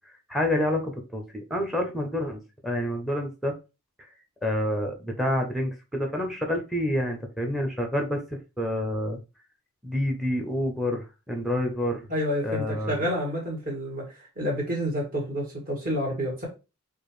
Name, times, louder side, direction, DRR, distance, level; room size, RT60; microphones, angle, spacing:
voice 1, 0.3-3.6 4.4-8.2 8.6-9.2 9.8-12.1 12.4-13.1, left 1 dB, ahead, 4 dB, 0.6 m, -28 dB
voice 2, 12.1-16.5, equal, 40° right, -2 dB, 1.8 m, -29 dB
4.6 x 2.6 x 3.1 m, 0.29 s
head